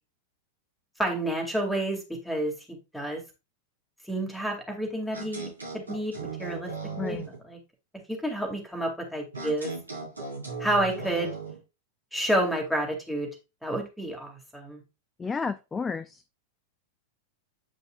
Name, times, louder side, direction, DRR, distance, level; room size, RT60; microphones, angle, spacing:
voice 1, 1.0-3.2 4.1-5.5 5.7-6.7 7.0-7.2 7.4-7.6 8.1-9.7 10.6-11.3 12.1-13.3 13.6-14.8, right 1 dB, ahead, 0 dB, 2.4 m, -29 dB
sound 1, 5.1-7.4 9.3-11.6, right 3 dB, 80° right, 2.9 m, -37 dB
voice 2, 15.2-16.2, left 5 dB, 15° left, 11 dB, 0.4 m, -31 dB
8.9 x 5.3 x 2.4 m, 0.27 s
figure-of-eight pair, 90°, 0 cm